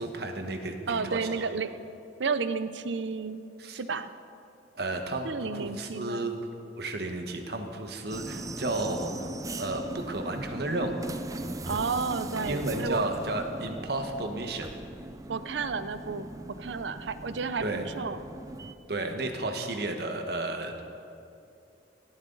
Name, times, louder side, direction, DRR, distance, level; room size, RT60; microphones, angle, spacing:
voice 1, 0.0-1.6 3.6-3.8 4.7-6.4 6.8-9.3 9.6-11.0 12.5-14.7 17.6-17.9 18.9-20.8, right 2 dB, 60° right, 5 dB, 1.3 m, -33 dB
voice 2, 0.9-1.8 2.2-3.4 3.7-4.1 5.2-6.3 11.7-13.0 15.3-18.2, right 5 dB, 85° right, 12 dB, 0.6 m, -32 dB
sound 1, 8.1-18.7, right 2 dB, 20° right, 0.5 m, -39 dB
18.5 x 13.0 x 4.0 m, 2.6 s
head